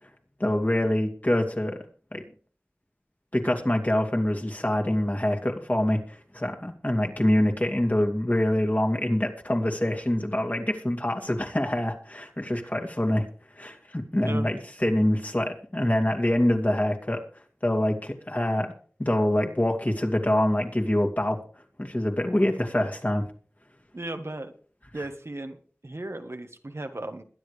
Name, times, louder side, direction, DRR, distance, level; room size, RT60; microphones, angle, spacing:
voice 1, 0.4-1.8 2.1-2.2 3.3-13.3 13.6-17.2 17.6-18.7 19.0-21.4 21.8-23.3, left 1 dB, 35° left, 2 dB, 2.5 m, -25 dB
voice 2, 23.9-24.5 24.9-25.6 25.8-27.2, right 2 dB, 65° right, 7 dB, 1.5 m, -35 dB
22.0 x 10.5 x 3.3 m, 0.43 s
wide cardioid pair, 40°, 5 cm